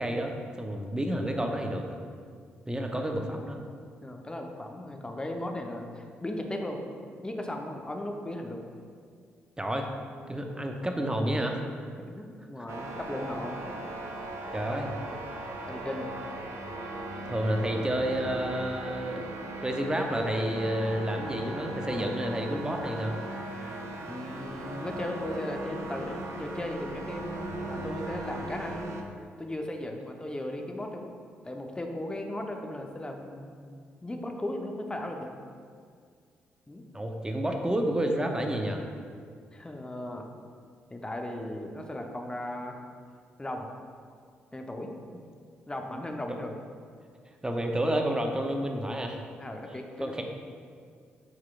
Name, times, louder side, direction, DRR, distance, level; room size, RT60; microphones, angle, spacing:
voice 1, 0.0-2.0 2.7-3.6 9.6-9.9 10.3-11.7 14.5-15.0 17.2-19.3 19.6-23.2 36.9-38.8 46.2-46.3 47.4-49.2 50.0-50.2, right 1 dB, 15° right, 3 dB, 0.8 m, -30 dB
voice 2, 4.0-6.8 7.2-8.6 12.1-13.6 14.7-14.9 15.7-16.1 24.1-27.3 27.6-28.9 29.4-31.1 31.4-33.7 34.0-35.3 36.7-36.8 39.5-40.3 40.9-42.8 43.4-43.7 44.5-44.9 45.7-46.6 49.4-50.1, left 1 dB, 15° left, 3 dB, 0.8 m, -36 dB
sound 1, 12.7-29.0, right 1 dB, 60° right, 0.7 m, -38 dB
9.2 x 4.7 x 2.5 m, 2.1 s
figure-of-eight pair, 40°, 6 cm